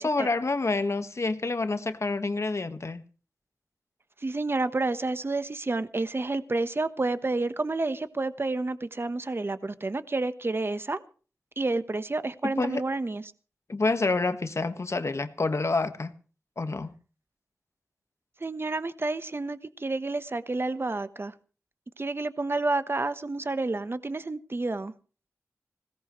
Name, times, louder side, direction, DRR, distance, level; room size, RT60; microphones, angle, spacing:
voice 1, 0.0-3.0 12.4-12.8 13.7-16.1 16.6-16.9, left 3 dB, 60° left, 9 dB, 1.5 m, -28 dB
voice 2, 4.2-11.0 11.6-13.2 18.4-21.3 22.0-24.9, right 2 dB, 45° right, 12 dB, 1.1 m, -30 dB
21.0 x 17.5 x 3.2 m, 0.37 s
wide cardioid pair, 60°, 5 cm